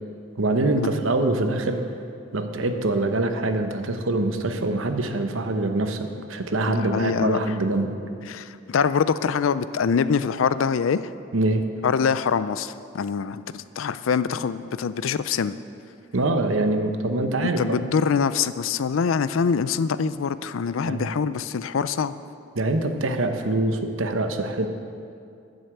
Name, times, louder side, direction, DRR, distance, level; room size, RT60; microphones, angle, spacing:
voice 1, 0.4-1.8 2.3-7.9 11.3-11.6 16.1-17.9 20.8-21.1 22.6-24.7, right 2 dB, 80° right, 7 dB, 0.9 m, -24 dB
voice 2, 6.7-7.4 8.3-11.0 11.8-15.6 17.4-22.1, left 6 dB, 85° left, 15 dB, 0.4 m, -24 dB
9.7 x 7.9 x 7.8 m, 2.4 s
head